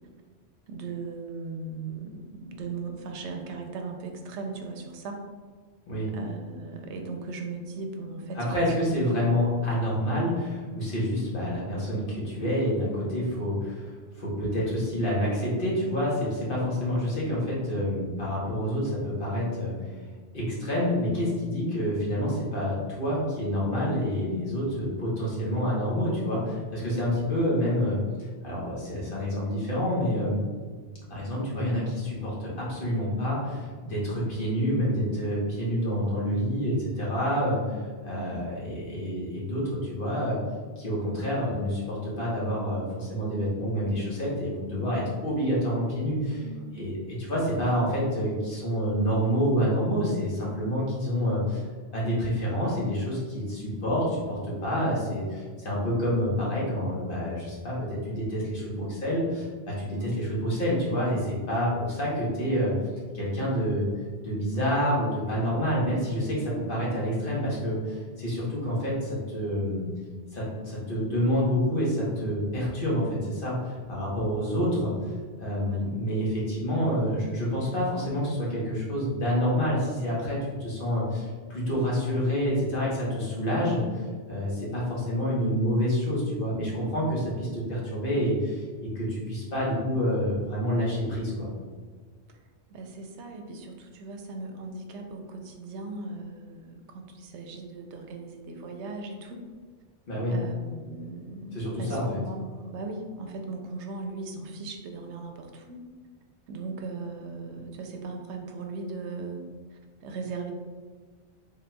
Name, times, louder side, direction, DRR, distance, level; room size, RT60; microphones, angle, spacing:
voice 1, 0.7-5.2 6.1-8.7 9.1-9.6 25.3-25.6 37.7-38.4 46.3-47.0 50.5-50.8 59.9-60.6 75.6-75.9 83.7-84.0 92.7-99.4 100.3-105.8 106.5-109.4 110.0-110.5, right 3 dB, 85° right, 4 dB, 0.9 m, -38 dB
voice 2, 8.3-19.8 20.3-28.0 28.4-30.4 31.1-37.6 38.0-40.4 40.8-46.4 46.7-51.6 51.9-62.7 63.1-63.9 64.2-69.9 70.3-83.9 84.3-91.5 100.1-100.4 101.5-102.2, equal, 55° left, -6 dB, 1.2 m, -28 dB
4.0 x 3.4 x 2.2 m, 1.5 s
omnidirectional pair, 1.1 m